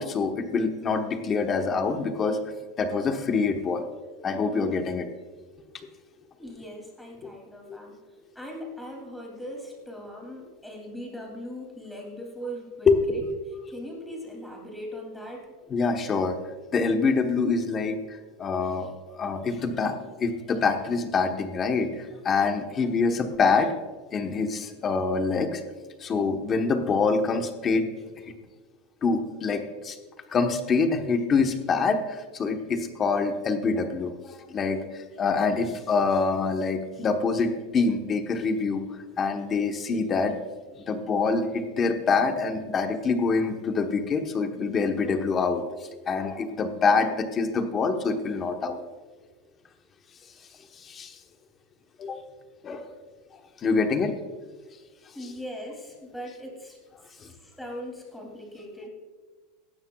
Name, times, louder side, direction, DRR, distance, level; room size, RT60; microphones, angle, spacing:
voice 1, 0.0-2.5 2.8-3.8 4.2-5.1 7.2-7.3 7.7-7.8 12.9-13.0 15.7-16.3 16.7-23.7 24.1-25.6 26.0-27.9 28.2-28.3 29.0-30.0 30.3-38.8 39.2-40.3 40.9-48.8 50.8-51.2 52.0-52.2 52.6-53.0 53.6-54.1 57.2-57.3, left 4 dB, 25° left, 6 dB, 1.1 m, -25 dB
voice 2, 6.4-8.0 8.3-13.2 13.7-15.5 55.1-56.8 57.1-58.9, equal, 5° left, 0 dB, 2.8 m, -40 dB
17.5 x 12.5 x 2.3 m, 1.4 s
supercardioid pair, 150°, 0 cm